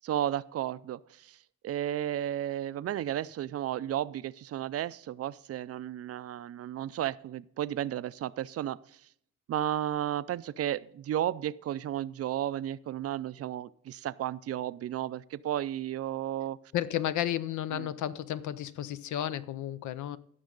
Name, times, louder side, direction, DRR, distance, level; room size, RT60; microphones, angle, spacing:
voice 1, 0.0-1.4 1.6-8.8 9.5-16.6 17.7-17.9, right 11 dB, 50° right, 0.5 m, -33 dB
voice 2, 16.7-20.2, left 12 dB, 75° left, 0.6 m, -32 dB
16.0 x 6.3 x 3.8 m
cardioid pair, 90°, 30 cm